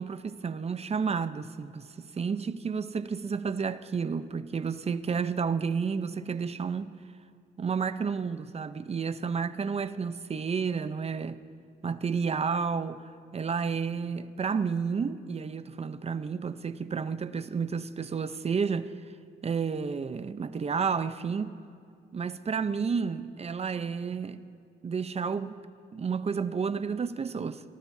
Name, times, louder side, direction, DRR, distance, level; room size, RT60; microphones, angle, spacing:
voice 1, 0.0-7.0 7.6-11.4 11.8-18.9 19.4-21.5 22.1-24.4 24.8-25.6 25.9-27.6, right 5 dB, 30° right, 0.7 m, -31 dB
27.0 x 18.5 x 2.7 m
cardioid pair, 90°, 20 cm